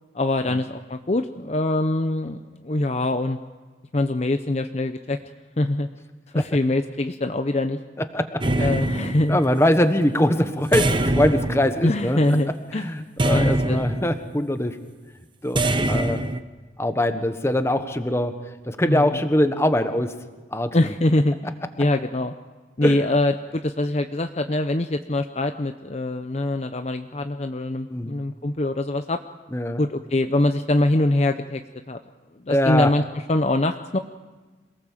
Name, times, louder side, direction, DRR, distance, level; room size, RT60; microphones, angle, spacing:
voice 1, 0.1-3.4 3.9-5.2 5.6-5.9 6.3-7.8 8.6-9.4 11.8-12.9 13.3-13.8 18.8-19.2 20.7-21.4 21.8-22.3 22.8-29.2 29.8-31.6 31.9-32.0 32.5-33.0 33.3-34.0, left 1 dB, 40° left, 7 dB, 0.7 m, -23 dB
voice 2, 8.0-8.7 9.3-12.2 12.7-14.8 15.4-16.2 16.8-18.4 18.7-20.1 20.5-20.9 22.8-23.0 27.9-28.1 29.5-29.8 32.5-32.9, left 1 dB, 15° left, 8 dB, 1.3 m, -22 dB
sound 1, 8.4-9.7 10.7-12.4 13.2-14.3 15.6-16.4, right 1 dB, 25° right, 0.9 m, -24 dB
27.0 x 18.5 x 7.4 m, 1.3 s
head